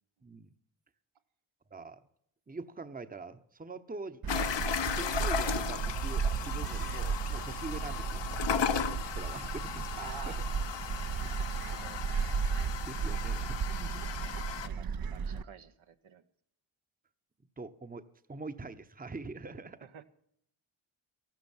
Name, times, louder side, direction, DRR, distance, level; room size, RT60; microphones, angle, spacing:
voice 1, 0.2-0.5 1.7-2.0 2.5-4.5 4.9-9.9 10.3-10.4 10.8-11.3 12.8-14.1 17.6-18.0 18.3-19.9, right 3 dB, 15° right, 11 dB, 1.0 m, -44 dB
Gull seagull, 4.2-15.4, right 6 dB, 45° right, 0.8 m, -34 dB
sound 1, 4.3-14.7, left 8 dB, 60° left, 1.1 m, -36 dB
voice 2, 10.0-10.4 11.3-12.0 14.2-16.2 19.8-20.0, right 9 dB, 70° right, 8 dB, 1.2 m, -50 dB
14.0 x 12.0 x 7.2 m, 0.70 s
cardioid pair, 70°, 49 cm